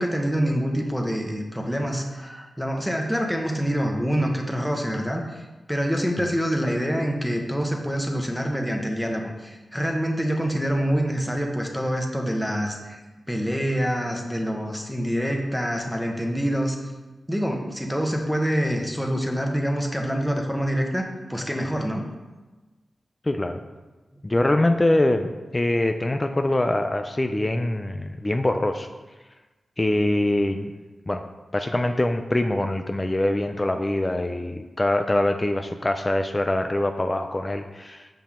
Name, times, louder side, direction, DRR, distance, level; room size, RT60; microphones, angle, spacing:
voice 1, 0.0-13.0 13.3-16.8 17.3-22.1, equal, ahead, 1 dB, 1.1 m, -26 dB
voice 2, 23.2-23.6 24.2-28.9 29.8-30.7 31.1-31.2 31.5-38.1, left 1 dB, 25° left, 6 dB, 0.4 m, -24 dB
6.9 x 5.6 x 3.6 m, 1.2 s
cardioid pair, 55°, 0 cm